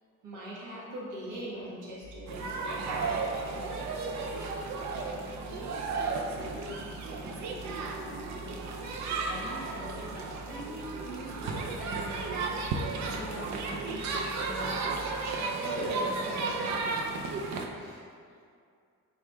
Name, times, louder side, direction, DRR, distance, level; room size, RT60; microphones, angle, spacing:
voice 1, 0.2-3.5 17.7-18.0, right 1 dB, 80° right, -7 dB, 1.3 m, -42 dB
sound 1, 2.0-15.4, equal, 10° left, 0.4 m, -48 dB
sound 2, 2.3-17.7, right 3 dB, 65° right, 0.5 m, -34 dB
voice 2, 5.0-17.1, left 1 dB, 45° left, -1 dB, 0.7 m, -44 dB
4.8 x 3.2 x 2.2 m, 2.3 s
cardioid pair, 90°, 30 cm